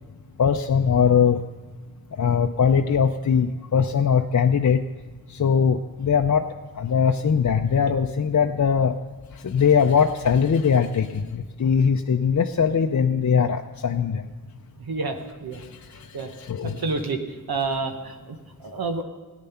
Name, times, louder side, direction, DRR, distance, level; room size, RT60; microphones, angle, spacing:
voice 1, 0.4-1.4 2.2-4.8 5.4-6.4 6.8-8.9 9.4-11.2 11.6-14.2 16.5-16.8, left 7 dB, 50° left, 5 dB, 0.6 m, -20 dB
voice 2, 14.8-15.6 16.1-16.3 16.8-17.2 17.5-19.0, right 3 dB, 75° right, 5 dB, 1.0 m, -29 dB
14.0 x 9.8 x 5.7 m, 1.4 s
cardioid pair, 50°, 37 cm